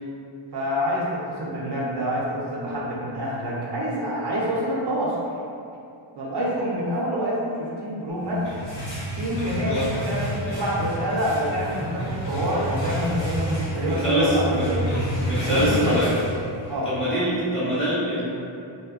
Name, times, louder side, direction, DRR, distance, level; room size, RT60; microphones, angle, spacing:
voice 1, 0.5-5.2 6.2-8.5 9.2-14.8 15.3-16.0 16.7-16.9, equal, 60° right, -5 dB, 0.5 m, -27 dB
sound 1, 8.2-16.9, equal, 60° left, 1.0 m, -29 dB
voice 2, 13.8-14.7 15.2-16.1 16.8-18.3, equal, 25° left, -11 dB, 1.0 m, -24 dB
3.2 x 2.1 x 2.3 m, 2.6 s
wide cardioid pair, 135°, 49 cm